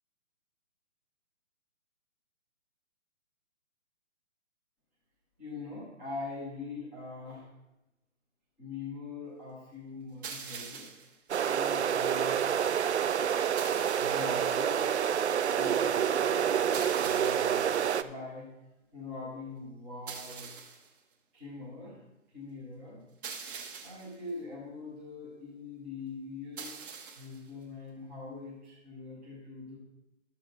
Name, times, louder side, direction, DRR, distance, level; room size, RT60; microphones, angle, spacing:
voice 1, 5.4-7.5 8.6-10.9 11.4-12.5 14.0-18.5 18.9-20.5 21.3-23.0 23.8-29.8, left 3 dB, 5° right, -7 dB, 0.5 m, -43 dB
sound 1, 10.2-11.2 13.6-14.4 16.7-17.7 20.1-20.9 23.2-24.2 26.6-27.4, right 6 dB, 40° right, 1.1 m, -43 dB
sound 2, 11.3-18.0, right 8 dB, 55° right, 0.5 m, -28 dB
11.5 x 7.0 x 3.9 m, 0.95 s
figure-of-eight pair, 145°, 41 cm